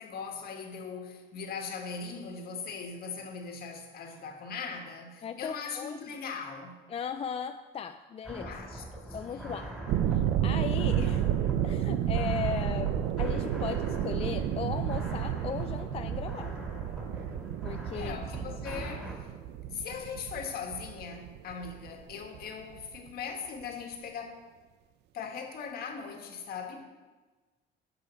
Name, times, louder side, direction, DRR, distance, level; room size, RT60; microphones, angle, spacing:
voice 1, 0.0-6.8 8.3-9.7 17.9-19.3 19.7-24.5 25.1-26.9, left 5 dB, 65° left, 1.8 m, -40 dB
voice 2, 5.2-6.0 6.9-8.5 9.1-9.7 10.1-11.3 11.6-16.7 17.6-18.2 18.5-18.6, left 7 dB, 35° left, 0.4 m, -37 dB
sound 1, 8.2-19.1, right 1 dB, 5° right, 4.1 m, -42 dB
sound 2, 9.9-22.4 22.7-23.1, right 10 dB, 80° right, 0.6 m, -31 dB
16.0 x 5.5 x 5.8 m
cardioid pair, 110°, 17 cm